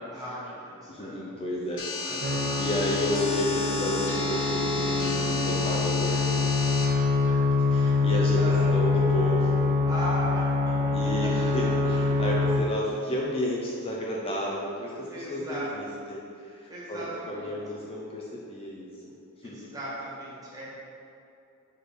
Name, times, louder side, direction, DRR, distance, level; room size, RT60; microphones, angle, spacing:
voice 1, 0.0-1.2 2.0-2.6 8.4-8.7 9.9-10.7 11.4-11.5 15.0-15.9 16.7-17.6 19.4-20.7, equal, 15° right, -7 dB, 1.5 m, -37 dB
voice 2, 0.9-1.9 2.6-9.6 10.9-19.7, left 1 dB, 25° left, -4 dB, 0.5 m, -32 dB
sound 1, 1.8-6.9, left 3 dB, 60° left, 0.8 m, -33 dB
sound 2, 2.2-12.6, left 3 dB, 40° right, 0.5 m, -25 dB
4.8 x 4.5 x 4.6 m, 2.7 s
head